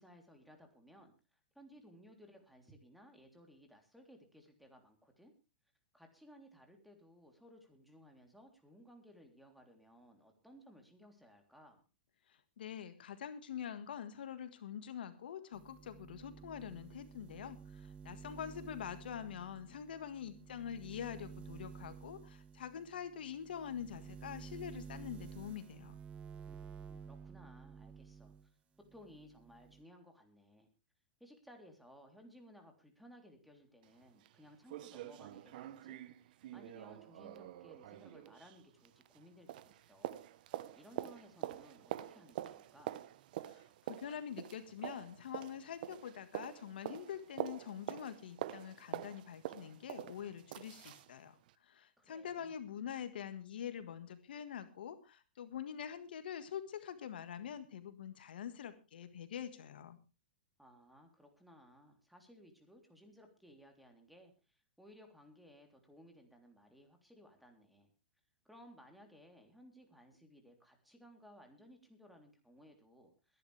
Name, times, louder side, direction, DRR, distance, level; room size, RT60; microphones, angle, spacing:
voice 1, 0.0-5.3 5.9-11.8 26.5-28.3 28.9-30.7 31.2-40.2 40.7-43.0 52.0-52.6 60.6-67.9 68.5-73.4, equal, ahead, 3 dB, 3.4 m, -60 dB
voice 2, 12.3-26.0 43.5-51.4 51.6-60.0, left 9 dB, 75° left, 10 dB, 1.7 m, -45 dB
sound 1, 15.5-28.5 28.8-29.8, right 6 dB, 25° right, 1.4 m, -52 dB
sound 2, 33.8-33.9 34.3-34.4 34.7-39.2 39.5-51.1 51.5-51.6, right 13 dB, 60° right, 1.1 m, -46 dB
21.5 x 11.0 x 3.4 m, 0.30 s
hypercardioid pair, 125°, 5 cm